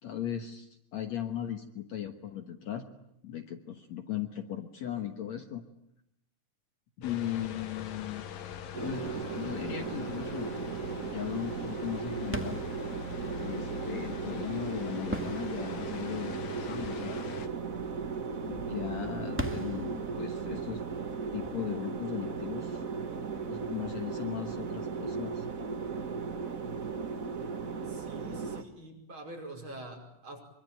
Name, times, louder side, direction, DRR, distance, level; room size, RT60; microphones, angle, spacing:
voice 1, 0.0-2.9 3.2-5.6 7.0-8.3 8.8-10.5 11.0-12.6 13.4-17.3 18.4-20.8 21.3-22.8 23.5-25.4, left 10 dB, 60° left, 6 dB, 2.3 m, -37 dB
sound 1, 7.0-17.5, left 7 dB, 85° left, 3.3 m, -43 dB
sound 2, 8.7-28.6, right 5 dB, 70° right, 0.7 m, -36 dB
sound 3, 12.3-22.8, right 1 dB, 5° right, 1.2 m, -43 dB
voice 2, 27.9-30.4, right 1 dB, 35° right, 2 dB, 6.0 m, -45 dB
25.0 x 24.5 x 9.1 m, 0.79 s
omnidirectional pair, 3.9 m